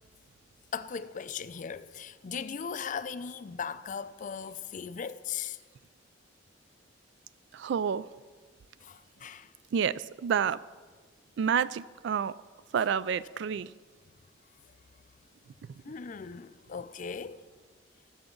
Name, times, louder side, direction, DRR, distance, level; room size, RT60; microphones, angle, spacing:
voice 1, 0.7-5.6 8.8-9.5 15.8-17.4, left 6 dB, 45° left, 0.4 m, -38 dB
voice 2, 7.5-8.1 9.7-10.6 11.4-12.3 12.7-13.7, right 7 dB, 65° right, 0.3 m, -29 dB
20.0 x 7.1 x 3.8 m
head